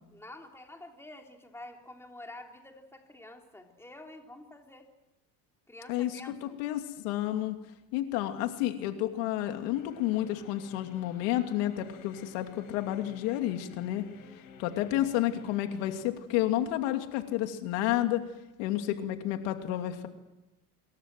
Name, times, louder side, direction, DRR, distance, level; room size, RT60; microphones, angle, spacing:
voice 1, 0.1-4.9 5.7-6.6 14.2-14.8, left 2 dB, 5° left, 2 dB, 3.6 m, -49 dB
voice 2, 5.9-7.6 7.9-14.0 14.6-18.2 18.6-20.1, left 13 dB, 85° left, 6 dB, 2.7 m, -30 dB
sound 1, 9.7-16.0, left 6 dB, 60° left, 6.9 m, -53 dB
26.5 x 22.5 x 7.7 m, 0.99 s
cardioid pair, 125°, 38 cm